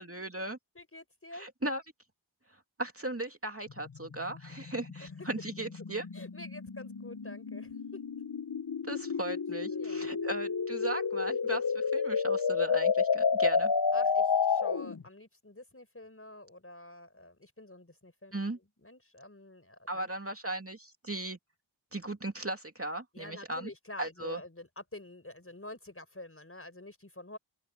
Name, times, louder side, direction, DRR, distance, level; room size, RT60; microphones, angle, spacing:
voice 1, 0.0-0.6 1.3-1.8 2.8-6.1 8.8-13.7 18.3-18.6 19.9-21.4 21.9-23.7 24.0-24.4, right 2 dB, 30° right, 2.6 m, -37 dB
voice 2, 0.8-1.5 5.0-5.3 6.1-8.0 9.7-10.2 13.9-20.1 23.1-27.4, left 2 dB, 30° left, 5.5 m, -48 dB
sound 1, 3.7-15.0, left 5 dB, 50° left, 1.1 m, -30 dB
open air
wide cardioid pair, 45°, 47 cm